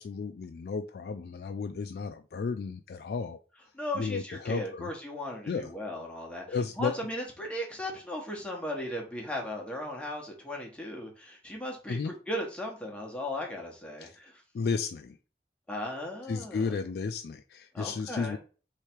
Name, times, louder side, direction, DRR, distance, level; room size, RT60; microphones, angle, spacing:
voice 1, 0.0-3.4 3.9-4.9 5.5-5.7 6.5-6.9 11.9-12.1 14.0-14.2 14.5-15.2 16.3-18.4, left 5 dB, 65° left, 7 dB, 0.3 m, -33 dB
voice 2, 3.7-14.4 15.7-16.6 17.7-18.4, left 1 dB, 5° left, -1 dB, 1.1 m, -37 dB
3.3 x 3.2 x 4.4 m, 0.36 s
head